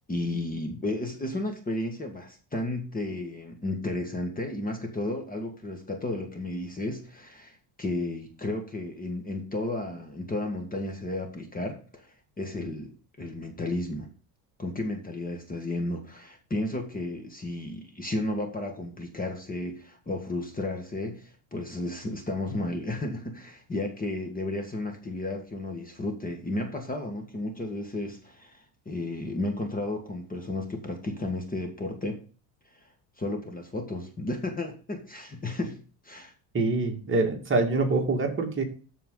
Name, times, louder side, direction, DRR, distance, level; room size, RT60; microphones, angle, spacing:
voice 1, 0.1-12.1 12.4-12.9 13.2-14.1 14.6-32.2 32.7-32.9 33.2-35.8 36.0-36.3, left 2 dB, 15° left, 4 dB, 1.7 m, -33 dB
voice 2, 36.5-38.6, right 3 dB, 25° right, 2 dB, 2.2 m, -25 dB
14.0 x 4.6 x 3.9 m, 0.38 s
cardioid pair, 130°, 49 cm